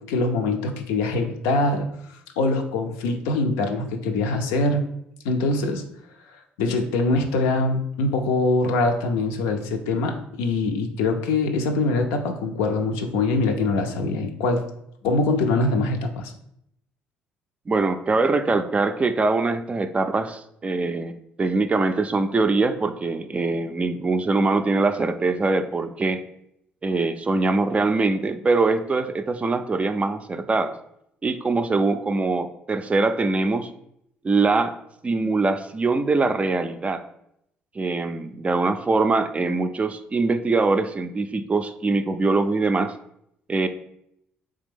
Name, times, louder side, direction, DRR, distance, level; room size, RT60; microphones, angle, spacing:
voice 1, 0.1-1.9 2.4-4.9 5.2-5.8 6.6-14.7 15.0-16.3, left 3 dB, 80° left, 5 dB, 0.4 m, -23 dB
voice 2, 17.7-26.2 26.8-30.7 31.2-33.7 34.2-34.7 35.0-37.0 37.8-42.9 43.5-43.7, right 3 dB, 25° right, 9 dB, 0.3 m, -23 dB
3.4 x 3.2 x 3.4 m, 0.76 s
hypercardioid pair, 55°, 5 cm